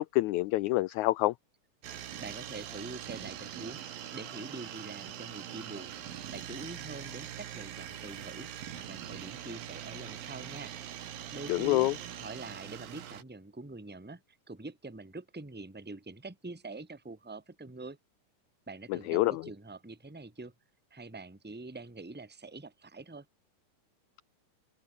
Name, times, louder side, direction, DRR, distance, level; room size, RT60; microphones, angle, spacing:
voice 1, 0.0-1.3 11.5-11.9 18.9-19.4, left 18 dB, 90° left, 1.6 m, -27 dB
sound 1, 1.8-13.2, right 10 dB, 85° right, 3.7 m, -43 dB
voice 2, 2.2-10.7 11.3-14.2 14.5-18.0 18.7-20.5 20.9-23.3, right 3 dB, 5° right, 1.9 m, -45 dB
open air
omnidirectional pair, 4.0 m